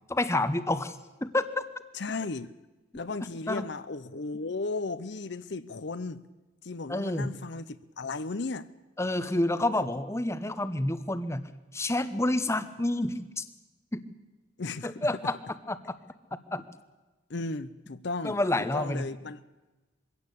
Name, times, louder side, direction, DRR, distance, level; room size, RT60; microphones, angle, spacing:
voice 1, 0.1-1.6 3.5-3.7 6.9-7.3 9.0-13.4 13.9-14.0 14.8-15.3 15.7-15.9 16.5-16.6 18.2-19.1, left 1 dB, 15° left, 12 dB, 0.9 m, -29 dB
voice 2, 1.9-2.5 2.9-6.2 6.6-8.7 14.6-15.1 17.3-18.4 18.7-19.4, left 3 dB, 55° left, 14 dB, 0.7 m, -35 dB
22.5 x 16.5 x 8.4 m, 1.1 s
head